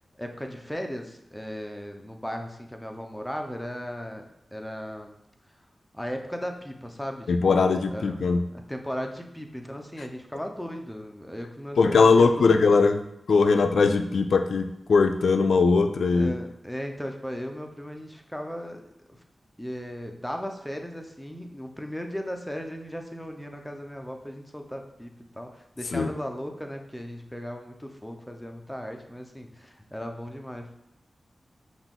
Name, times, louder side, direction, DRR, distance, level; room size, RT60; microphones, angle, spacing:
voice 1, 0.2-5.1 5.9-8.2 8.5-12.6 16.1-18.8 19.6-30.7, equal, 5° left, 4 dB, 0.6 m, -37 dB
voice 2, 7.3-8.4 11.8-13.0 13.3-16.3 25.9-26.1, left 4 dB, 85° left, 7 dB, 0.3 m, -20 dB
5.7 x 2.4 x 3.6 m, 0.81 s
cardioid pair, 45°, 0 cm